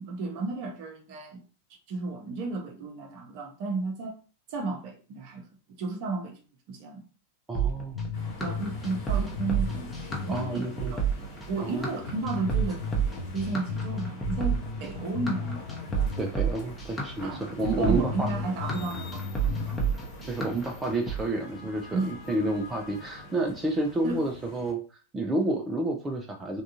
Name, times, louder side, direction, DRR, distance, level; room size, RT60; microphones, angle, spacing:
voice 1, 0.0-1.4 1.9-4.2 4.5-5.5 5.8-7.1 8.4-9.9 10.2-11.2 11.5-12.8 13.3-15.7 17.2-19.8 21.9-22.1 24.0-24.2, right 3 dB, 45° right, 0.7 m, -33 dB
sound 1, 7.5-21.2, right 7 dB, 10° left, 0.9 m, -30 dB
voice 2, 7.5-8.0 10.3-10.9 11.6-11.9 16.2-18.3 20.3-24.8 25.1-26.6, right 2 dB, 15° right, 0.4 m, -30 dB
sound 2, 7.9-10.5 10.8-10.9 11.5-11.6 12.1-16.3 16.6-16.7 17.3-17.4 17.8-19.9, left 5 dB, 65° left, 0.6 m, -35 dB
sound 3, 8.1-24.7, left 2 dB, 45° left, 1.1 m, -45 dB
3.5 x 2.3 x 2.7 m
figure-of-eight pair, 90°, 0 cm